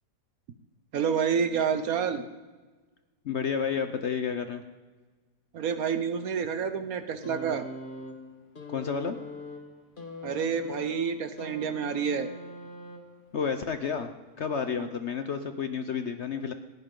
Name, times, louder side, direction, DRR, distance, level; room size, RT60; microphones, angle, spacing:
voice 1, 0.9-2.2 5.5-7.6 10.2-12.3, right 7 dB, 65° right, 10 dB, 1.2 m, -28 dB
voice 2, 3.2-4.6 8.7-9.2 13.3-14.1 14.4-16.5, left 6 dB, 55° left, 8 dB, 0.8 m, -30 dB
sound 1, 7.2-13.4 14.4-14.6, left 2 dB, 30° left, 1.8 m, -42 dB
19.0 x 16.5 x 3.8 m, 1.3 s
omnidirectional pair, 1.8 m